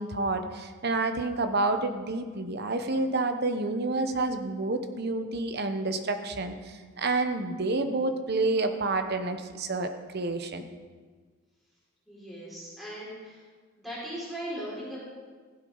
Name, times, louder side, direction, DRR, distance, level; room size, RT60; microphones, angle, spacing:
voice 1, 0.0-10.7, right 3 dB, 50° right, 8 dB, 0.9 m, -29 dB
voice 2, 12.1-13.4 13.8-15.0, equal, ahead, -8 dB, 4.5 m, -38 dB
15.5 x 8.1 x 5.5 m, 1.5 s
head